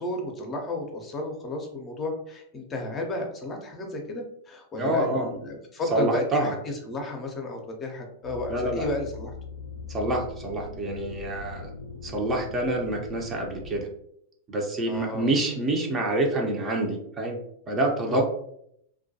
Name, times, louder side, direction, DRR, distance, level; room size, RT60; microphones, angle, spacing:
voice 1, 0.0-9.3 14.9-15.3 18.1-18.2, left 2 dB, 25° left, 2 dB, 0.6 m, -33 dB
voice 2, 4.8-5.3 5.9-6.5 8.5-8.9 9.9-11.7 12.0-13.9 14.5-17.4 17.7-18.2, right 1 dB, 25° right, 1 dB, 0.6 m, -27 dB
sound 1, 8.2-13.8, left 4 dB, 85° left, 0.4 m, -41 dB
2.3 x 2.2 x 2.7 m, 0.71 s
hypercardioid pair, 100°, 0 cm